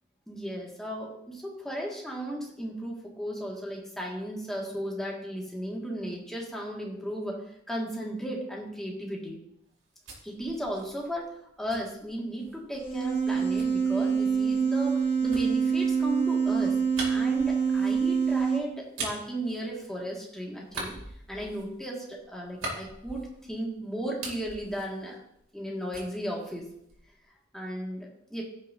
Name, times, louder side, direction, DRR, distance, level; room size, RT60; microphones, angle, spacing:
voice 1, 0.3-7.4 7.7-9.4 10.2-11.3 11.6-16.8 17.1-21.0 21.3-25.2 25.5-26.7 27.5-28.4, equal, ahead, -3 dB, 1.8 m, -35 dB
sound 1, 9.7-12.7 13.6-20.2 20.6-23.7 24.0-25.7 25.9-27.2, right 2 dB, 85° right, 2.7 m, -42 dB
sound 2, 12.7-18.6, right 6 dB, 30° left, 1.3 m, -26 dB
15.5 x 6.2 x 2.7 m, 0.74 s
head